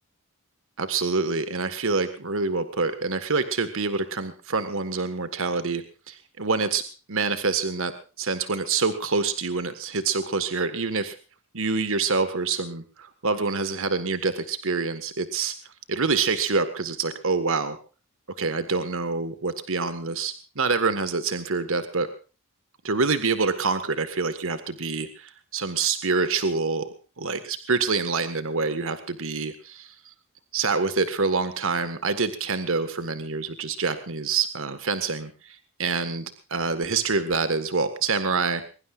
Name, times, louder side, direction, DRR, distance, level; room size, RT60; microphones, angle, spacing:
voice 1, 0.8-7.9 8.2-11.2 11.5-15.5 15.9-17.8 18.4-22.1 22.8-26.9 27.2-30.1 30.5-38.6, right 4 dB, 65° right, 10 dB, 1.6 m, -26 dB
22.5 x 22.0 x 2.5 m, 0.36 s
head